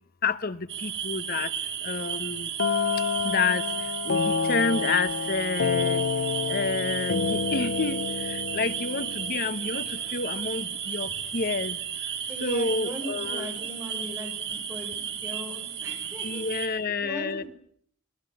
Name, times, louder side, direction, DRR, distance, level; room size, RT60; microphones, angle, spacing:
voice 1, 0.2-1.5 1.8-2.5 3.2-3.6 4.0-6.0 6.5-8.0 8.3-11.8 12.4-13.5 16.2-17.4, left 4 dB, 50° left, 12 dB, 1.2 m, -29 dB
sound 1, 0.7-16.7, right 8 dB, 60° right, 4.5 m, -34 dB
sound 2, 2.6-10.3, left 5 dB, 65° left, 1.0 m, -29 dB
voice 2, 12.3-14.3 14.7-17.5, equal, 15° right, 2 dB, 7.4 m, -39 dB
26.0 x 19.5 x 8.6 m, 0.62 s
head